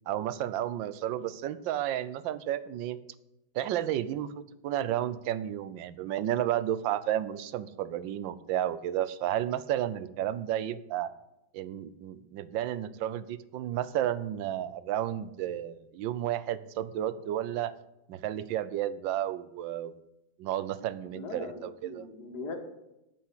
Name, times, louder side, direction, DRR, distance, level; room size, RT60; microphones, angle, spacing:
voice 1, 0.1-3.0 3.5-11.1 11.5-17.7 18.1-19.9 20.4-22.0, right 12 dB, 80° right, 15 dB, 1.4 m, -32 dB
voice 2, 21.2-22.6, left 4 dB, 55° left, 3 dB, 2.1 m, -40 dB
9.1 x 7.2 x 8.7 m, 0.89 s
omnidirectional pair, 2.1 m